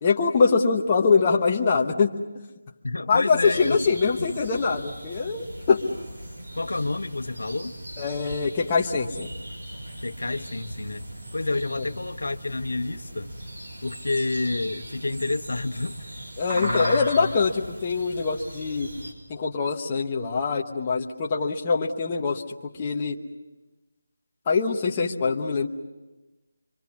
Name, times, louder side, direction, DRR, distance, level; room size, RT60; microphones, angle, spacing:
voice 1, 0.0-2.1 3.1-5.8 8.0-9.3 16.4-18.9 19.3-22.4 22.8-23.2 24.5-25.7, left 5 dB, 20° left, 0 dB, 1.0 m, -23 dB
voice 2, 2.8-4.3 6.6-7.7 10.0-11.1 11.3-13.3 13.8-16.0 16.5-17.3, left 2 dB, 90° left, 9 dB, 1.0 m, -29 dB
sound 1, 3.4-19.1, right 1 dB, 55° right, 5.9 m, -38 dB
26.0 x 24.5 x 7.2 m, 1.1 s
figure-of-eight pair, 175°, 0 cm